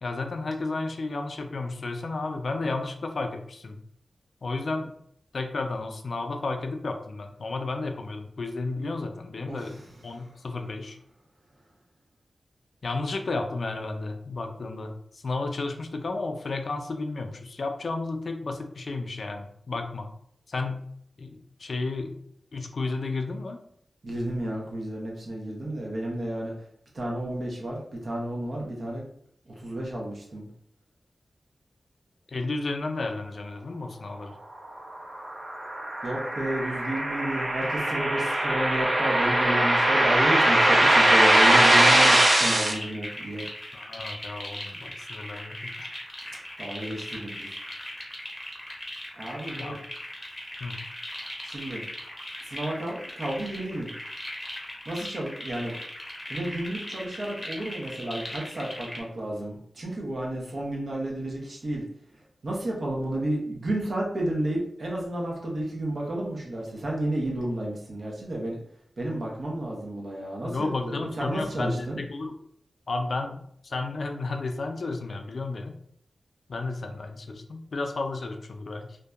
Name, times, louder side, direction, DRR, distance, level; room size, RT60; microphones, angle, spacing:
voice 1, 0.0-3.8 4.4-4.9 5.3-9.8 10.0-11.0 12.8-20.1 20.5-20.9 21.2-22.2 22.5-23.6 32.3-34.4 43.7-45.9 49.6-49.7 50.6-50.8 70.4-72.3 72.9-75.8 76.5-79.0, left 3 dB, 70° left, 5 dB, 0.3 m, -32 dB
voice 2, 9.5-9.8 24.0-26.5 26.9-29.0 29.5-30.5 36.0-43.5 46.6-47.6 49.2-49.8 51.4-51.8 52.4-53.9 54.9-55.7 56.3-61.8 62.4-68.6 69.0-72.0, right 1 dB, 60° right, -2 dB, 0.8 m, -31 dB
sound 1, 34.9-42.7, right 1 dB, 35° right, 0.4 m, -21 dB
sound 2, 41.4-59.0, left 1 dB, 10° left, 0.8 m, -39 dB
2.6 x 2.2 x 2.3 m, 0.67 s
wide cardioid pair, 65°, 0 cm